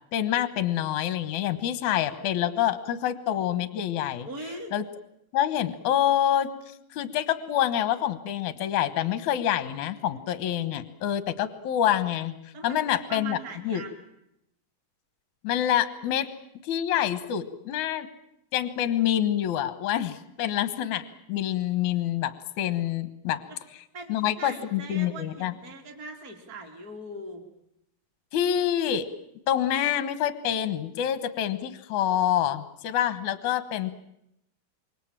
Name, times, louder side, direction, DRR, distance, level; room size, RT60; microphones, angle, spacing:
voice 1, 0.1-4.3 4.7-4.8 5.3-12.3 12.6-13.4 13.6-13.8 15.4-16.3 16.6-18.1 18.5-23.4 24.1-25.5 28.3-29.1 29.5-33.9, left 11 dB, 70° left, 12 dB, 1.9 m, -27 dB
voice 2, 4.2-4.7 12.5-14.0 23.5-23.6 23.9-27.4, right 2 dB, 20° right, 3 dB, 3.1 m, -41 dB
27.0 x 23.5 x 7.4 m, 0.80 s
omnidirectional pair, 5.2 m